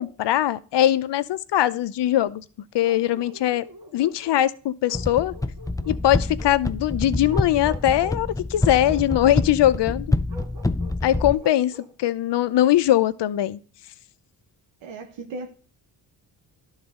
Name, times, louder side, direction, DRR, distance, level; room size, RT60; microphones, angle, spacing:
voice 1, 0.0-2.4 2.7-3.7 3.9-5.3 5.9-10.1 11.0-11.7 12.0-13.6, left 12 dB, 65° left, 0.7 m, -21 dB
Bark, 2.8-4.4 4.9-6.6 7.2-8.2 8.6-9.5 10.3-12.0, equal, 55° right, 2.5 m, -44 dB
sound 1, 4.9-11.4, left 2 dB, 10° left, 0.4 m, -27 dB
voice 2, 14.8-15.6, right 3 dB, 85° right, 1.2 m, -36 dB
11.5 x 4.0 x 3.6 m
cardioid pair, 65°, 45 cm